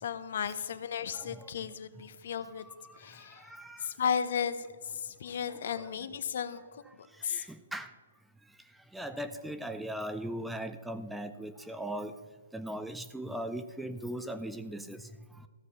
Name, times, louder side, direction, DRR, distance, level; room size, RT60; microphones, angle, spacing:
voice 1, 0.0-2.7 3.0-3.4 3.8-4.7 4.9-6.8 7.2-7.5, left 7 dB, 55° left, 12 dB, 0.8 m, -34 dB
voice 2, 1.1-1.4 3.5-3.8 5.8-5.9 7.3-7.9 8.9-12.1 12.5-15.0, right 1 dB, 5° right, 10 dB, 0.5 m, -38 dB
14.5 x 6.4 x 5.7 m, 1.4 s
hypercardioid pair, 140°, 0 cm